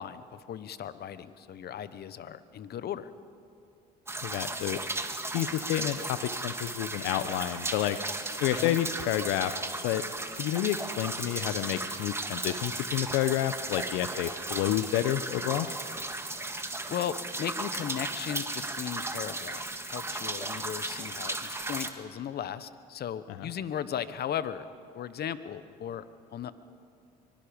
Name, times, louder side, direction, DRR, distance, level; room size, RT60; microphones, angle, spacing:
voice 1, 0.0-3.1 8.5-8.8 16.9-24.7 24.9-26.0 26.3-26.5, left 9 dB, 55° left, 14 dB, 1.1 m, -36 dB
sound 1, 4.1-21.9, right 2 dB, 10° right, 1.8 m, -35 dB
voice 2, 4.2-4.8 5.3-6.2 6.4-8.0 8.4-9.5 9.8-10.0 10.4-15.7 23.4-23.5, left 13 dB, 75° left, 11 dB, 0.8 m, -29 dB
24.5 x 22.0 x 5.2 m, 2.6 s
supercardioid pair, 70°, 20 cm